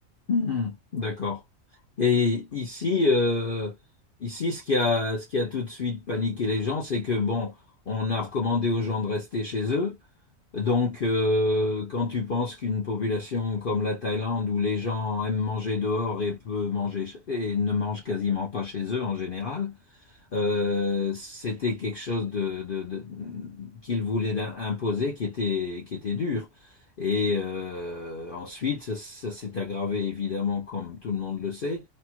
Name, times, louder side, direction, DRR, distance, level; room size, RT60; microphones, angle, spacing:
voice 1, 0.3-1.4 2.0-3.7 4.2-7.5 7.9-10.0 10.5-19.8 20.3-26.7 27.0-31.8, left 4 dB, 50° left, 0.8 m, -28 dB
3.0 x 2.3 x 2.8 m
omnidirectional pair, 1.4 m